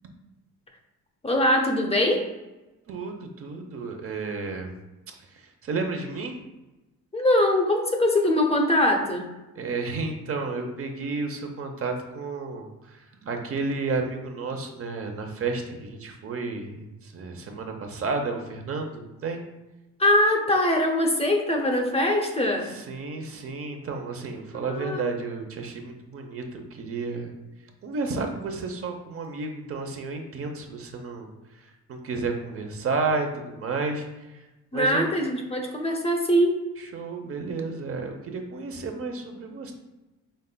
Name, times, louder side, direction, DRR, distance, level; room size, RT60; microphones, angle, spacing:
voice 1, 1.2-2.3 7.1-9.3 20.0-22.7 24.7-25.1 34.7-36.6, left 1 dB, 20° left, 3 dB, 0.7 m, -22 dB
voice 2, 2.9-4.7 5.6-6.4 9.5-19.4 22.6-27.3 27.8-31.3 31.9-34.0 34.3-34.4 34.7-35.1 36.8-39.7, right 4 dB, 50° right, 3 dB, 0.7 m, -32 dB
5.3 x 3.3 x 2.2 m, 1.1 s
cardioid pair, 90°, 30 cm